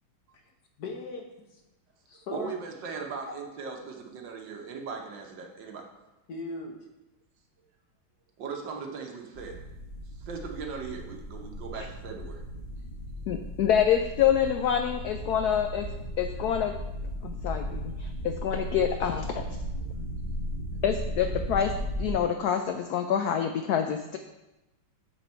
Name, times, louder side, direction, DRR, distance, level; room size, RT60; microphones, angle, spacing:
voice 1, 0.8-1.6 2.1-2.6 2.9-3.4 6.3-6.9, left 3 dB, 55° left, 2 dB, 1.3 m, -39 dB
voice 2, 2.3-5.9 8.4-9.6 10.2-12.4, right 5 dB, 65° right, 2 dB, 1.6 m, -38 dB
sound 1, 9.3-22.1, equal, 20° left, 1.3 m, -36 dB
voice 3, 13.3-15.9 16.2-16.7 17.2-19.4 20.8-21.7 22.0-24.2, left 9 dB, 85° left, 6 dB, 0.8 m, -26 dB
7.0 x 6.4 x 4.4 m, 0.98 s
omnidirectional pair, 2.2 m